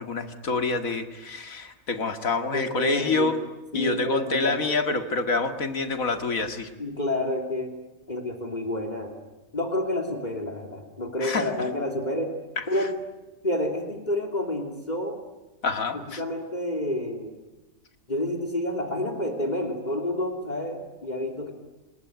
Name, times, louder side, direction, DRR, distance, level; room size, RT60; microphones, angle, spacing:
voice 1, 0.0-3.4 3.7-6.7 11.2-11.5 12.6-12.7 15.6-16.2, left 3 dB, 85° left, 8 dB, 2.5 m, -27 dB
voice 2, 2.5-3.3 3.7-5.1 6.8-7.7 8.1-9.2 9.5-12.3 12.7-12.9 13.4-15.2 15.9-17.4 18.1-21.5, left 1 dB, 30° left, 6 dB, 3.3 m, -29 dB
29.5 x 20.5 x 9.5 m, 1.1 s
omnidirectional pair, 1.4 m